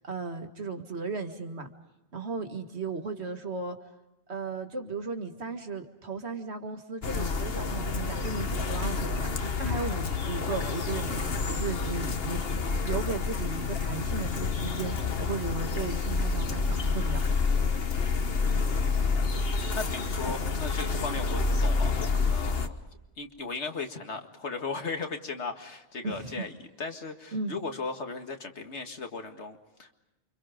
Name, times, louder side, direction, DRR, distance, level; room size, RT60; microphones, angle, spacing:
voice 1, 0.0-1.7 2.1-3.8 4.3-12.4 12.8-17.3 26.0-26.4 27.3-27.5, right 4 dB, 75° right, 5 dB, 2.2 m, -36 dB
sound 1, 7.0-22.7, left 4 dB, 60° left, 1.5 m, -29 dB
voice 2, 18.6-22.9 23.2-26.5 26.8-29.9, left 4 dB, 85° left, 5 dB, 2.2 m, -37 dB
29.5 x 25.5 x 5.1 m, 0.98 s
omnidirectional pair, 1.1 m